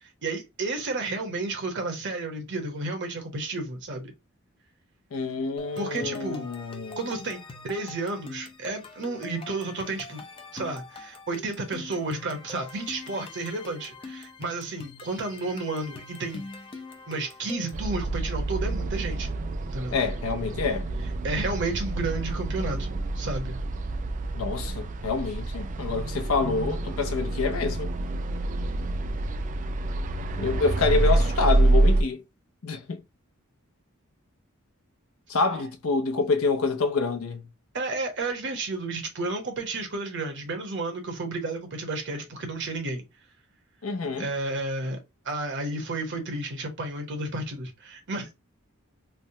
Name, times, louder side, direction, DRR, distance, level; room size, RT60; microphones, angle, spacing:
voice 1, 0.0-4.1 5.8-6.5 7.0-10.2 10.5-16.5 17.1-19.3 19.7-20.0 21.2-23.6 37.7-43.0 44.2-45.0 45.2-48.3, right 2 dB, 60° right, 1.0 m, -32 dB
voice 2, 5.1-7.1 19.9-20.9 24.3-27.9 30.4-32.2 32.6-33.0 35.3-37.5 43.8-44.3, left 4 dB, 80° left, 0.6 m, -27 dB
sound 1, 5.6-17.9, left 3 dB, 25° left, 0.4 m, -44 dB
sound 2, 17.7-32.0, right 2 dB, 35° right, 0.3 m, -27 dB
3.3 x 2.1 x 2.7 m
head